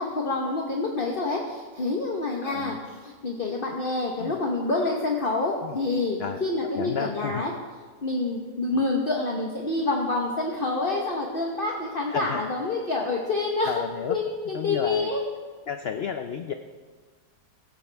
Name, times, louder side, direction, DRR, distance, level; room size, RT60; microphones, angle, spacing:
voice 1, 0.0-7.5 8.0-13.8 14.1-15.2, left 3 dB, 35° left, -1 dB, 1.3 m, -27 dB
voice 2, 2.4-2.8 4.2-4.4 5.6-5.8 6.2-6.4 6.7-7.4 12.1-12.5 13.6-14.2 14.5-15.1 15.7-16.5, left 7 dB, 60° left, 7 dB, 0.6 m, -31 dB
16.0 x 15.0 x 3.5 m, 1.5 s
omnidirectional pair, 1.7 m